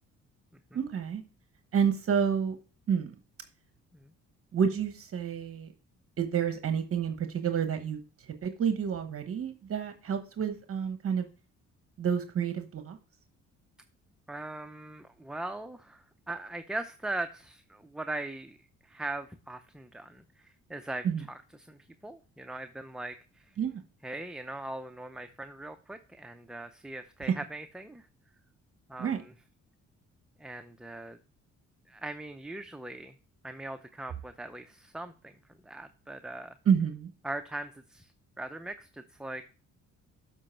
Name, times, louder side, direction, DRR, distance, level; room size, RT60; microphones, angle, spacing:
voice 1, 0.7-1.2 1.7-2.6 2.9-3.1 4.5-5.7 6.2-8.0 8.4-11.3 12.0-13.0 21.0-21.2 23.6-23.8 29.0-29.2 36.7-37.1, right 7 dB, 50° right, 7 dB, 1.0 m, -29 dB
voice 2, 14.3-18.6 18.8-23.5 24.0-28.1 28.9-29.2 30.4-31.2 31.9-33.1 33.4-35.3 35.6-36.5 37.2-38.1 38.4-39.5, right 2 dB, ahead, 8 dB, 0.5 m, -40 dB
7.4 x 4.9 x 4.4 m, 0.36 s
cardioid pair, 90°, 30 cm